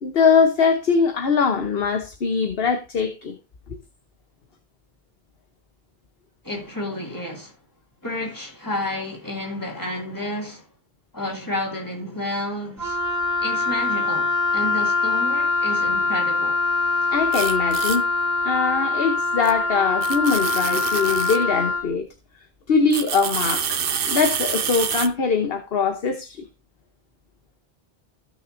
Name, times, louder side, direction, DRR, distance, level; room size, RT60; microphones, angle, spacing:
voice 1, 0.0-3.3 17.1-18.1 18.4-22.1 22.7-23.8 24.1-26.5, left 5 dB, 70° left, 1.3 m, -22 dB
voice 2, 6.4-7.6 8.0-10.7 11.1-13.0 13.4-16.6, left 1 dB, 20° left, 2.7 m, -31 dB
Wind instrument woodwind instrument, 12.8-21.9, left 3 dB, 15° right, 2.5 m, -23 dB
sound 1, 17.3-18.0 19.4-19.5 20.0-21.4 22.9-25.1, right 7 dB, 65° right, 1.0 m, -27 dB
16.0 x 6.1 x 2.7 m
omnidirectional pair, 1.0 m